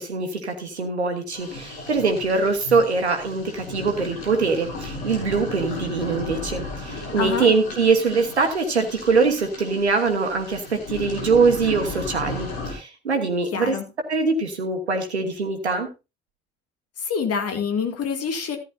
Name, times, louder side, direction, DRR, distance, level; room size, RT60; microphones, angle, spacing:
voice 1, 0.0-13.8 14.1-15.9, right 4 dB, 90° right, 1.3 m, -23 dB
sound 1, 1.3-12.7, left 3 dB, 70° left, 4.9 m, -35 dB
voice 2, 7.2-7.5 13.5-13.8 17.0-18.6, left 6 dB, 50° left, 2.3 m, -26 dB
14.0 x 10.0 x 2.7 m
figure-of-eight pair, 50°, 32 cm